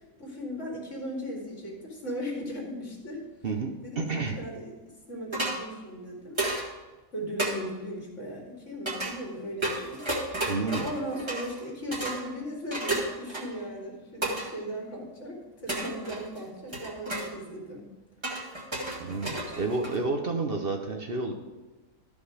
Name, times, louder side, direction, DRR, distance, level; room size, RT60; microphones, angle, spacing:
voice 1, 0.2-3.2 3.8-4.7 5.1-6.4 7.1-10.0 10.8-17.9 19.4-19.8, equal, 60° left, -2 dB, 2.6 m, -37 dB
voice 2, 3.4-4.4 10.5-10.9 19.0-21.3, right 3 dB, 50° right, 3 dB, 1.0 m, -30 dB
sound 1, 5.3-5.6 6.4-6.7 7.4-7.5 8.9-9.1 9.6-11.6 11.9-12.2 12.7-13.6 14.2-14.5 15.7-16.4 16.7-17.3 18.2-20.1, right 2 dB, 20° right, 1.7 m, -32 dB
12.5 x 5.3 x 4.9 m, 1.2 s
omnidirectional pair, 1.4 m